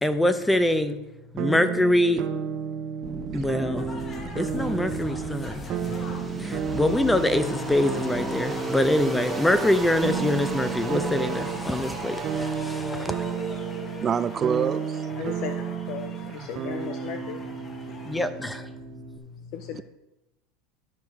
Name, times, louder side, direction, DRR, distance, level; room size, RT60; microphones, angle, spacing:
voice 1, 0.0-1.0 1.3-2.2 3.3-3.9 4.4-5.6 6.4-13.3 18.0-18.7, left 1 dB, 10° left, 11 dB, 0.8 m, -24 dB
sound 1, 1.4-19.2, right 7 dB, 50° right, 0.8 m, -33 dB
sound 2, 3.0-15.8, right 2 dB, 10° right, 1.4 m, -36 dB
sound 3, 3.8-18.2, left 2 dB, 30° left, 1.2 m, -42 dB
voice 2, 14.0-15.1 17.9-18.0, right 7 dB, 35° right, 15 dB, 0.4 m, -26 dB
voice 3, 15.2-18.2 18.7-18.8 19.5-19.8, left 8 dB, 60° left, 9 dB, 0.5 m, -37 dB
12.0 x 4.6 x 4.9 m, 0.97 s
hypercardioid pair, 100°, 0 cm